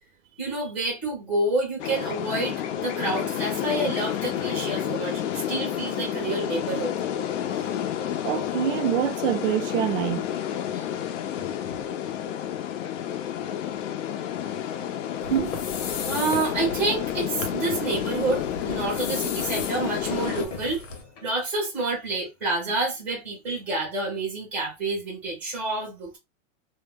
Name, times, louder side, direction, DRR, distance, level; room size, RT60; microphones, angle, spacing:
voice 1, 0.4-6.9 7.5-7.7 10.7-11.0 16.1-20.8 21.2-26.2, right 2 dB, 5° right, 0.5 m, -28 dB
sound 1, 1.8-20.5, left 10 dB, 70° left, 0.6 m, -30 dB
voice 2, 8.2-10.3 15.3-15.5, right 11 dB, 80° right, 0.5 m, -25 dB
sound 2, 10.5-10.6 11.4-12.3 12.8-13.3 13.7-13.9 14.8-14.9 15.1-15.2 16.0-16.1 16.5-16.6 16.8-16.9 17.1-17.5 18.1-18.2 20.3-21.6 22.0-22.2 22.7-22.8, left 4 dB, 35° left, 0.7 m, -45 dB
sound 3, 15.2-21.0, left 4 dB, 90° left, 0.9 m, -37 dB
2.1 x 2.0 x 3.3 m
supercardioid pair, 175°, 38 cm